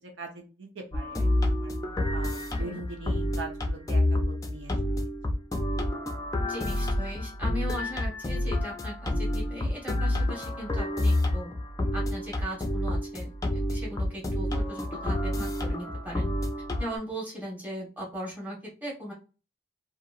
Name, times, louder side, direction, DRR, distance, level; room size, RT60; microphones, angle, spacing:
voice 1, 0.0-1.7 2.1-4.8, right 3 dB, 80° right, 2 dB, 0.8 m, -42 dB
sound 1, 0.9-17.0, left 1 dB, 20° left, 0.4 m, -28 dB
voice 2, 6.4-11.5 11.9-13.3 13.7-16.3 16.8-19.1, equal, 10° right, -4 dB, 1.1 m, -38 dB
2.9 x 2.5 x 2.4 m, 0.33 s
head